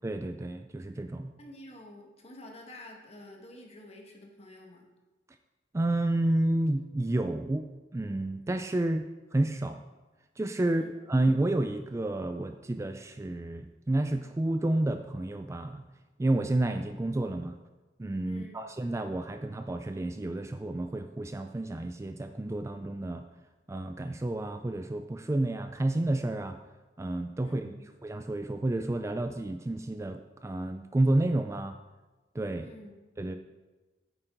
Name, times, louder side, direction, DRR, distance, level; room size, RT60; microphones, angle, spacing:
voice 1, 0.0-1.3 5.7-7.7 7.9-9.8 10.4-15.8 16.2-17.6 18.0-23.2 23.7-26.6 27.0-27.7 28.0-31.8 32.3-32.7 33.2-33.4, right 1 dB, 15° right, 7 dB, 0.3 m, -30 dB
voice 2, 1.4-4.9 10.6-10.9 18.2-18.6 27.4-27.9 32.6-33.1, left 1 dB, 35° left, 1 dB, 1.7 m, -49 dB
9.9 x 8.8 x 3.9 m, 1.2 s
head